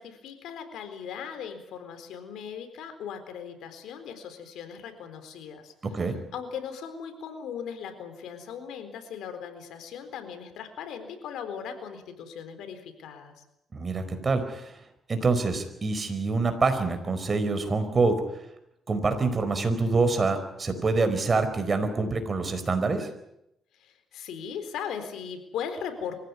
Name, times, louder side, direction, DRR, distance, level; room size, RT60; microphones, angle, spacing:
voice 1, 0.0-5.7 6.0-13.4 23.7-26.1, left 7 dB, 80° left, 8 dB, 4.1 m, -38 dB
voice 2, 5.8-6.2 13.7-14.7 15.1-18.2 18.9-23.1, right 3 dB, 35° right, 8 dB, 4.7 m, -26 dB
24.5 x 16.0 x 9.7 m, 0.83 s
cardioid pair, 90°, 0 cm